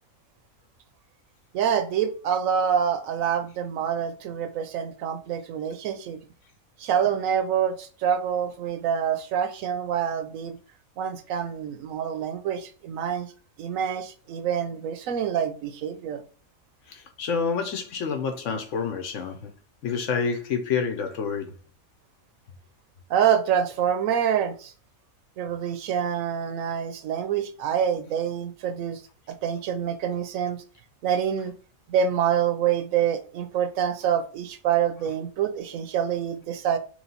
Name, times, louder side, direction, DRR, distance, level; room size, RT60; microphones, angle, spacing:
voice 1, 1.5-6.2 6.8-10.6 11.0-13.3 13.6-16.2 23.1-24.7 25.4-29.0 29.4-30.6 31.0-31.5 31.9-36.8, right 8 dB, 75° right, 1.0 m, -26 dB
voice 2, 16.9-19.5 19.8-21.5, left 5 dB, 65° left, 1.0 m, -28 dB
3.1 x 3.1 x 4.0 m
omnidirectional pair, 1.5 m